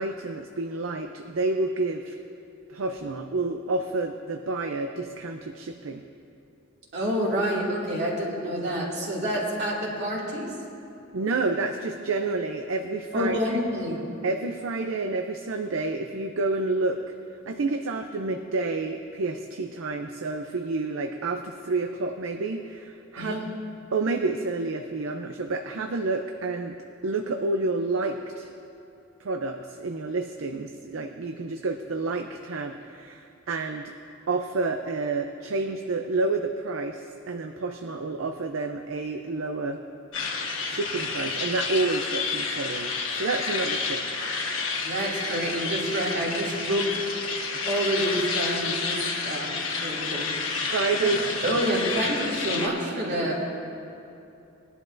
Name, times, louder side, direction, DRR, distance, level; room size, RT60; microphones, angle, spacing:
voice 1, 0.0-2.2 2.7-6.0 11.1-13.6 14.2-17.0 17.5-23.4 23.9-26.8 27.0-28.5 29.2-33.9 34.3-39.8 40.6-42.9 43.2-44.0 50.7-51.6 53.2-53.3, right 3 dB, 80° right, 5 dB, 0.5 m, -29 dB
voice 2, 6.9-10.5 13.1-14.0 23.2-23.4 44.8-46.9 47.6-50.3 51.4-53.4, equal, 55° right, -5 dB, 2.5 m, -28 dB
sound 1, 40.1-52.7, left 4 dB, 70° left, 1.2 m, -30 dB
20.0 x 11.0 x 2.6 m, 2.8 s
head